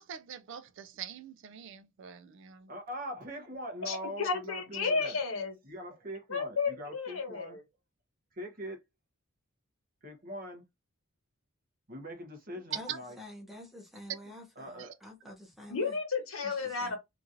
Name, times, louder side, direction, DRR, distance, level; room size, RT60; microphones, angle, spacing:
voice 1, 0.0-2.7 12.9-13.0 14.8-14.9, right 9 dB, 60° right, 0.3 m, -44 dB
voice 2, 2.7-5.2 5.6-7.6 8.3-8.8 10.0-10.6 11.9-13.2 14.6-14.9, equal, 45° right, 0.9 m, -42 dB
voice 3, 3.8-5.5 6.3-7.6 15.7-17.0, left 4 dB, 75° left, 1.0 m, -32 dB
voice 4, 13.2-16.0 16.4-17.0, left 1 dB, ahead, 0.8 m, -48 dB
3.0 x 2.5 x 2.6 m
head